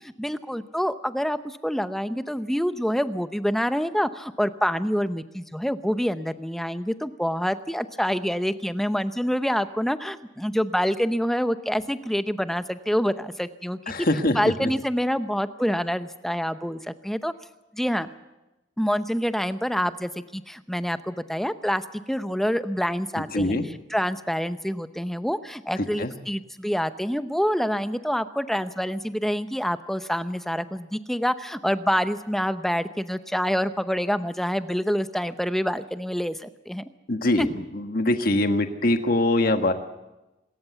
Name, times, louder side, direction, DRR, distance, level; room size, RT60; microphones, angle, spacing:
voice 1, 0.0-13.8 14.3-17.3 17.7-18.1 18.8-23.6 23.9-36.8 37.4-37.5, equal, ahead, 11 dB, 0.7 m, -26 dB
voice 2, 13.9-14.7 23.3-23.7 26.0-26.1 37.1-39.7, left 1 dB, 50° left, 6 dB, 1.5 m, -23 dB
26.0 x 14.0 x 8.2 m, 1.0 s
head